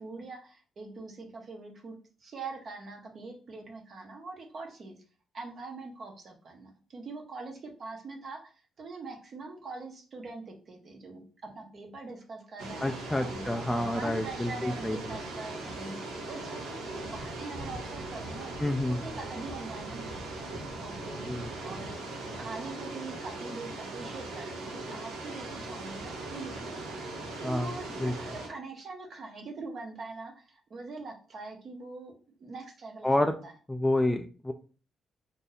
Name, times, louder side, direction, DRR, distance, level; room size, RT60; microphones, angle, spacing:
voice 1, 0.0-4.9 5.3-13.4 13.8-18.5 19.0-20.5 20.8-21.3 21.6-32.1 32.4-33.5, right 3 dB, 50° right, 2 dB, 1.0 m, -43 dB
sound 1, 12.6-28.5, right 2 dB, 90° right, 0.9 m, -39 dB
voice 2, 12.8-15.2 18.6-19.0 21.3-21.4 27.4-27.7 28.0-28.1 33.0-33.3 33.7-34.5, left 1 dB, 10° left, 5 dB, 0.3 m, -29 dB
2.7 x 2.6 x 3.9 m, 0.37 s
cardioid pair, 90°, 0 cm